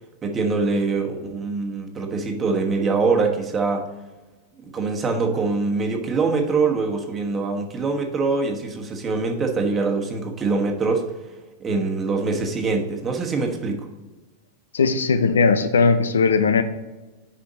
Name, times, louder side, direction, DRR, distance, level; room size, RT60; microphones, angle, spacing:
voice 1, 0.2-3.9 4.7-11.0 11.6-13.9, right 4 dB, 25° right, 3 dB, 1.2 m, -23 dB
voice 2, 14.7-16.6, left 4 dB, 85° left, 10 dB, 0.6 m, -18 dB
6.8 x 4.9 x 4.0 m, 1.2 s
hypercardioid pair, 105°, 0 cm